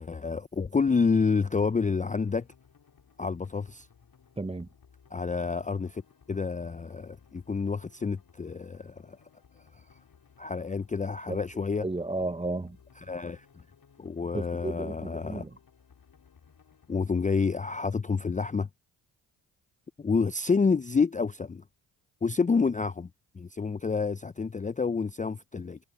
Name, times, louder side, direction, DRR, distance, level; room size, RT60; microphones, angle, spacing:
voice 1, 0.0-2.5 3.2-3.9 5.1-6.0 6.3-9.2 9.7-9.8 10.4-11.9 13.1-13.5 14.0-15.4 16.9-18.7 20.0-21.6 22.2-23.1 23.3-25.8, left 5 dB, 15° left, 0.6 m, -28 dB
sound 1, 1.3-17.1, left 6 dB, 45° left, 4.4 m, -60 dB
voice 2, 4.4-4.7 11.3-11.4 11.8-12.8 14.3-15.5, right 2 dB, 10° right, 1.0 m, -33 dB
hypercardioid pair, 45°, 49 cm